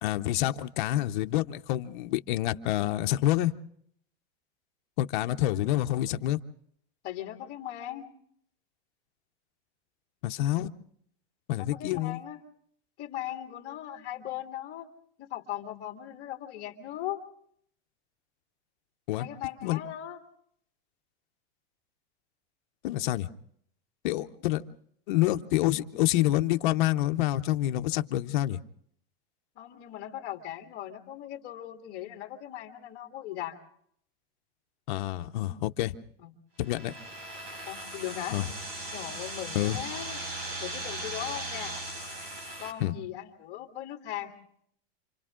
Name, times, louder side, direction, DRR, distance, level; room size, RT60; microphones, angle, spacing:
voice 1, 0.0-3.5 5.0-6.4 10.2-10.7 11.5-12.2 19.1-19.3 19.6-19.8 22.8-23.3 24.0-24.6 25.1-28.6 34.9-36.0 36.6-36.9 38.3-38.5 39.5-39.8 42.8-42.9, left 15 dB, 45° left, 8 dB, 0.7 m, -27 dB
voice 2, 7.0-8.1 11.6-12.4 13.0-14.9 15.2-17.2 19.2-20.2 29.6-33.6 36.2-36.3 37.7-38.4 38.9-40.2 40.6-41.7 42.6-44.4, left 12 dB, 30° left, 3 dB, 2.1 m, -38 dB
sound 1, 36.6-42.7, right 1 dB, 45° right, 5.1 m, -38 dB
28.0 x 26.0 x 3.7 m, 0.67 s
supercardioid pair, 175°, 35 cm